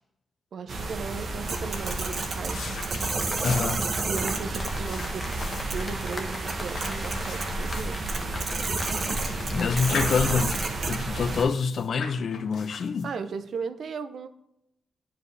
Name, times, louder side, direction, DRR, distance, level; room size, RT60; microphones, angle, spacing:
voice 1, 0.5-2.6 4.0-5.3 5.7-8.0 13.0-14.3, right 5 dB, 60° right, 0.6 m, -36 dB
sound 1, 0.7-11.4, right 2 dB, 45° right, 0.9 m, -30 dB
sound 2, 1.2-13.3, left 4 dB, 85° left, 1.3 m, -41 dB
sound 3, 3.3-10.7 10.9-11.2, left 2 dB, 25° left, 1.0 m, -40 dB
voice 2, 3.4-3.8 9.5-13.1, left 5 dB, 55° left, 0.4 m, -26 dB
10.0 x 4.9 x 3.2 m
wide cardioid pair, 160°, 0 cm